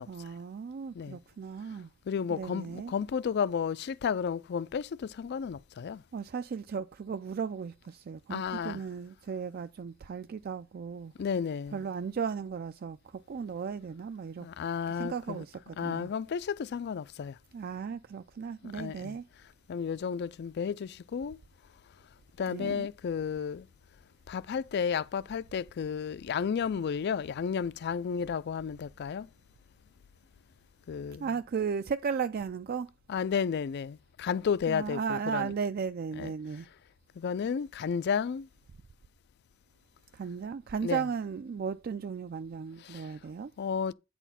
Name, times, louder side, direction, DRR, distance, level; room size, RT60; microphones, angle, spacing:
voice 1, 0.1-1.9 2.3-2.9 6.1-11.1 11.7-14.5 14.9-16.1 17.5-19.3 22.5-22.9 31.2-32.9 34.7-36.7 40.1-43.5, right 6 dB, 45° right, 0.3 m, -35 dB
voice 2, 2.1-6.0 8.3-8.8 11.2-11.8 14.4-15.4 15.8-17.4 18.6-19.2 19.7-21.4 22.4-23.7 24.3-29.3 30.9-31.3 33.1-35.5 36.2-36.3 37.2-38.5 40.8-41.0 42.8-43.1 43.6-43.9, left 6 dB, 55° left, 0.3 m, -32 dB
9.0 x 4.3 x 5.6 m
head